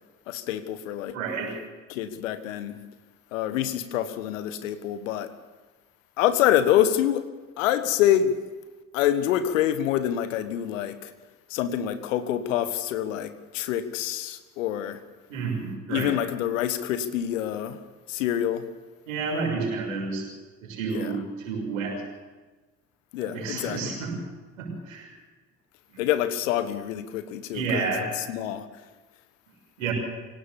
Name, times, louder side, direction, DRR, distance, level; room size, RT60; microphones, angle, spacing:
voice 1, 0.3-1.1 1.9-2.8 3.3-5.3 6.2-7.2 7.6-8.4 8.9-11.1 11.5-15.0 15.9-17.8 18.1-18.7 20.9-21.1 23.1-23.9 26.0-27.9 28.2-28.7, left 11 dB, 70° left, 12 dB, 1.4 m, -26 dB
voice 2, 1.1-1.6 15.3-16.1 19.1-20.3 20.6-21.2 21.4-22.0 23.2-24.2 24.6-25.1 27.5-28.1 29.8-29.9, right 4 dB, 70° right, 0 dB, 6.6 m, -30 dB
24.5 x 18.0 x 7.1 m, 1.3 s
figure-of-eight pair, 50°, 41 cm